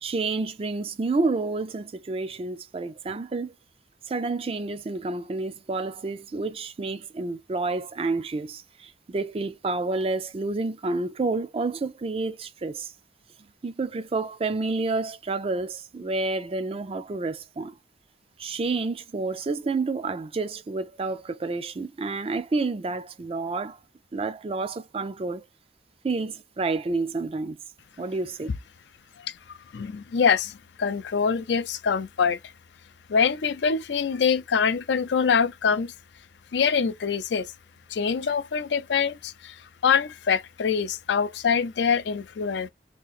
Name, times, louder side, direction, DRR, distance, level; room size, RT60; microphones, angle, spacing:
voice 1, 0.0-3.5 4.1-12.9 13.6-17.7 18.4-23.8 24.1-25.5 26.0-27.6 28.0-28.5, right 3 dB, 30° right, 0.4 m, -29 dB
voice 2, 29.2-32.4 33.1-35.9 36.5-37.5 37.9-42.7, left 6 dB, 75° left, 0.4 m, -25 dB
2.9 x 2.5 x 4.0 m
head